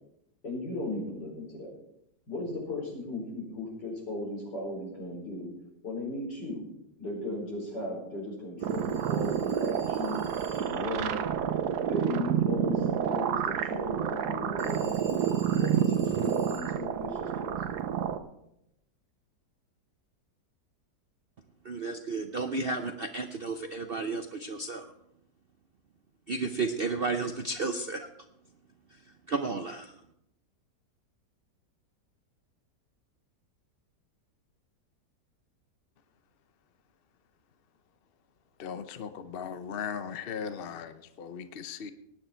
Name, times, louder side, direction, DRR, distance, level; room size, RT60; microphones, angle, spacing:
voice 1, 0.4-1.7 2.3-5.5 5.8-6.6 7.0-10.2 10.6-11.2 11.8-15.2 15.6-17.7, left 2 dB, 75° left, 5.6 m, -37 dB
Telephone, 8.6-10.9 14.6-16.8, right 1 dB, 25° left, 2.6 m, -50 dB
sound 1, 8.6-18.2, right 9 dB, 70° right, 1.3 m, -29 dB
voice 2, 21.6-24.8 26.3-28.1 29.3-29.9, right 3 dB, 55° right, 0.6 m, -32 dB
voice 3, 38.6-41.9, left 7 dB, 50° left, 0.7 m, -38 dB
19.0 x 9.7 x 4.4 m
omnidirectional pair, 1.8 m